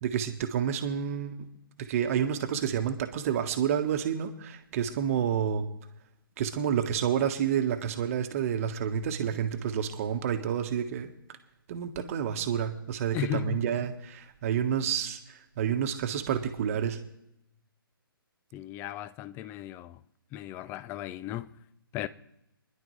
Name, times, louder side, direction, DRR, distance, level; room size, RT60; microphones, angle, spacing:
voice 1, 0.0-1.4 1.8-5.7 6.4-11.1 11.7-17.0, right 8 dB, 35° right, 1.2 m, -29 dB
voice 2, 13.1-13.6 18.5-20.0 20.3-21.5 21.9-22.1, left 13 dB, 15° left, 0.4 m, -36 dB
25.5 x 11.0 x 3.2 m
figure-of-eight pair, 135°, 12 cm